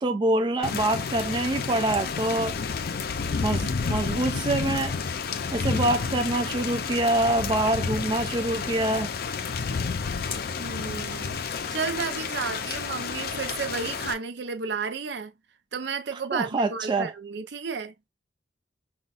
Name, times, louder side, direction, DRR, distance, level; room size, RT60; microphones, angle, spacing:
voice 1, 0.0-2.6 3.4-5.0 5.5-9.1 16.1-17.1, right 2 dB, 25° right, 0.3 m, -25 dB
Thunder / Rain, 0.6-14.1, left 5 dB, 55° left, 0.5 m, -30 dB
voice 2, 10.6-15.3 15.7-17.9, right 5 dB, 65° right, 0.6 m, -32 dB
5.7 x 2.3 x 2.4 m
head